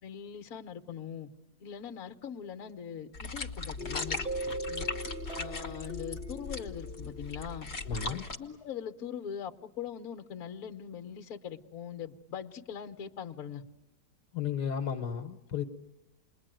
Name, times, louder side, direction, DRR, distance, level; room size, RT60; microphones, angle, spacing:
voice 1, 0.0-1.3 1.6-4.2 4.7-4.9 5.4-7.7 8.1-13.6, left 8 dB, 60° left, 5 dB, 1.5 m, -41 dB
sound 1, 3.1-8.4, left 3 dB, 40° left, 1.6 m, -38 dB
sound 2, 3.8-8.2, right 1 dB, 45° right, 2.6 m, -40 dB
voice 2, 7.8-8.2 14.3-15.6, left 7 dB, 75° left, 8 dB, 1.7 m, -33 dB
28.5 x 21.5 x 9.1 m, 1.0 s
omnidirectional pair, 1.8 m